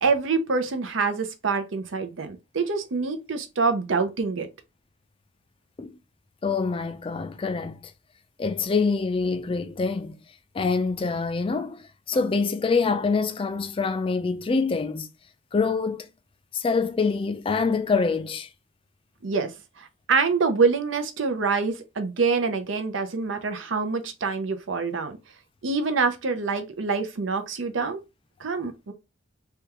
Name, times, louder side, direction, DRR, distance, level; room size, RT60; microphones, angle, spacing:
voice 1, 0.0-4.5 19.2-25.2 25.6-28.0 28.4-28.9, right 4 dB, 85° right, 0.6 m, -26 dB
voice 2, 6.4-7.8 8.4-10.2 10.5-15.1 15.5-16.1 16.5-18.5, left 4 dB, 30° left, 0.3 m, -25 dB
3.4 x 2.3 x 2.9 m
head